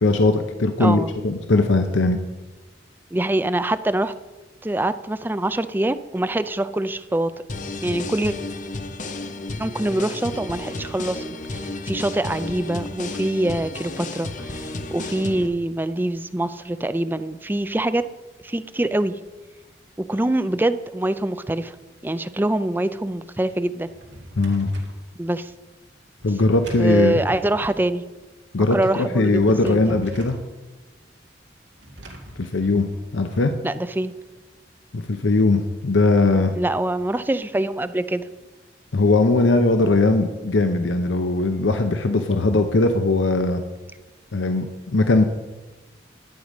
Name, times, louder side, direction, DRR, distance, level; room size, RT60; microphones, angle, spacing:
voice 1, 0.0-2.2 24.4-24.7 26.2-27.2 28.5-30.4 32.4-33.5 34.9-36.5 38.9-43.6 44.3-45.2, left 2 dB, 80° left, 7 dB, 0.7 m, -20 dB
voice 2, 0.8-1.1 3.1-4.1 4.6-7.3 7.8-8.3 9.6-11.2 11.5-18.0 18.4-19.2 20.1-21.8 22.0-23.9 25.2-25.5 26.8-28.0 28.7-30.0 33.6-34.1 36.6-38.2, right 1 dB, 10° right, 12 dB, 0.4 m, -24 dB
sound 1, 7.5-15.5, left 2 dB, 40° left, 0.8 m, -32 dB
Drawer open or close, 23.7-25.0 26.2-27.8 29.2-30.5 31.8-33.5, right 1 dB, 70° right, 2.2 m, -41 dB
11.5 x 8.1 x 5.2 m, 1.2 s
head